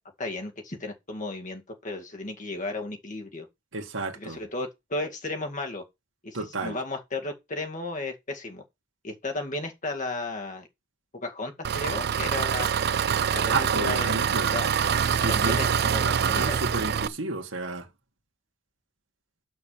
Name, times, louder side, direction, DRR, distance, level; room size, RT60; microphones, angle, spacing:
voice 1, 0.2-3.5 4.2-5.8 6.2-8.6 9.0-10.7 11.1-12.8 13.3-14.7 15.3-16.6, left 2 dB, 40° left, 2.1 m, -34 dB
voice 2, 3.7-4.4 6.3-6.8 13.5-14.5 15.2-15.7 16.0-17.9, right 3 dB, 75° right, 1.6 m, -32 dB
Engine, 11.6-17.1, right 7 dB, 55° right, 0.5 m, -25 dB
6.2 x 6.0 x 7.2 m
head